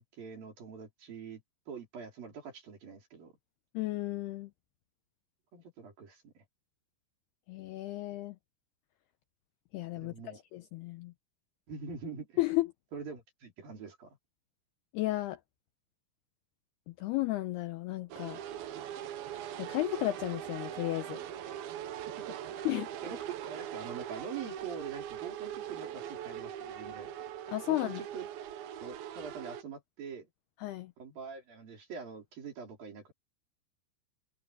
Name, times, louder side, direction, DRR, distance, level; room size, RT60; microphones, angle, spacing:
voice 1, 0.0-1.4 1.7-3.3 5.5-6.4 9.9-10.4 11.7-12.4 12.9-14.2 22.3-22.4 22.6-27.1 27.7-28.5 28.8-30.3 31.0-33.1, right 6 dB, 50° right, 6.0 m, -44 dB
voice 2, 3.7-4.5 7.5-8.4 9.7-10.1 10.5-11.1 12.4-12.7 14.9-15.4 16.9-18.4 19.6-21.2 22.7-22.9 27.5-28.0 30.6-30.9, left 18 dB, 85° left, 2.3 m, -33 dB
sound 1, 18.1-29.6, right 10 dB, 70° right, 2.5 m, -41 dB
omnidirectional pair, 5.6 m